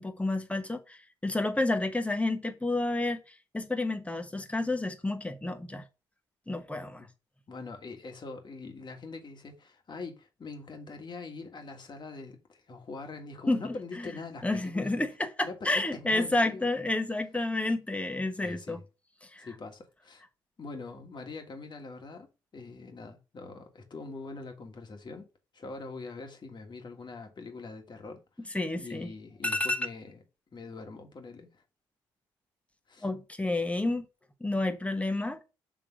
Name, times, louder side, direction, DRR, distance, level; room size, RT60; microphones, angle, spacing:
voice 1, 0.0-3.2 3.5-5.8 6.5-7.1 13.5-13.7 14.4-18.8 19.3-19.5 28.5-29.1 29.4-29.8 33.0-34.0 34.4-35.4, left 2 dB, 10° left, 1.2 m, -30 dB
voice 2, 7.5-15.0 15.4-16.7 18.4-18.8 19.4-20.2 20.6-22.3 22.5-25.3 25.5-30.2 30.5-31.6 32.9-33.1, left 3 dB, 45° left, 1.6 m, -43 dB
6.1 x 3.3 x 5.0 m
hypercardioid pair, 50°, 11 cm